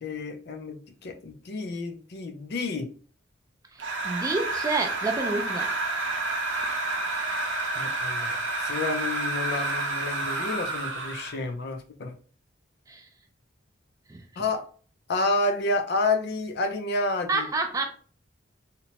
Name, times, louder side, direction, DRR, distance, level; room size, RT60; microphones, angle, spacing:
voice 1, 0.0-2.9 7.7-8.3 8.6-12.1 14.4-14.6 15.1-17.5, left 2 dB, 55° left, 6 dB, 0.4 m, -29 dB
voice 2, 3.7-5.7 12.9-13.1 14.1-14.2 17.3-17.9, right 3 dB, 15° right, 3 dB, 0.3 m, -29 dB
sound 1, 3.8-11.4, right 2 dB, 65° right, 0.6 m, -29 dB
2.8 x 2.1 x 2.8 m, 0.42 s
head